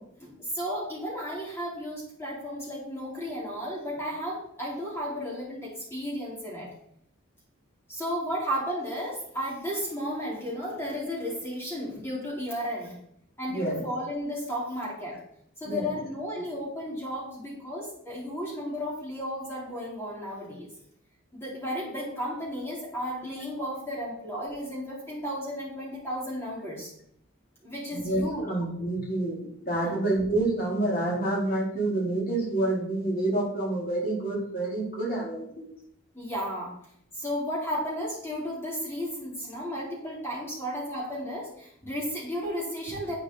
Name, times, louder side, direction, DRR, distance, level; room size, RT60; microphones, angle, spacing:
voice 1, 0.2-6.7 7.9-12.9 13.4-15.2 15.6-20.7 21.3-26.9 27.6-28.5 29.8-30.0 36.1-36.7 37.1-43.1, equal, 10° left, -6 dB, 4.8 m, -33 dB
voice 2, 13.5-13.8 15.6-15.9 27.9-35.7, right 2 dB, 45° left, -4 dB, 4.5 m, -28 dB
11.0 x 8.9 x 4.3 m, 0.70 s
head